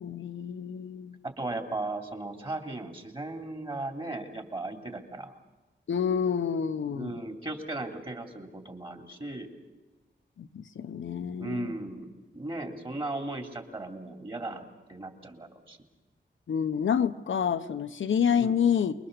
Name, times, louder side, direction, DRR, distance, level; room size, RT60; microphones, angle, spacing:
voice 1, 0.0-1.2 5.9-7.2 10.4-11.7 16.5-18.9, left 7 dB, 80° left, 8 dB, 1.0 m, -28 dB
voice 2, 1.2-5.4 6.9-9.5 11.4-15.8 18.4-18.6, right 2 dB, 25° right, 3 dB, 3.1 m, -37 dB
29.0 x 22.0 x 6.8 m, 1.2 s
wide cardioid pair, 140°, 20 cm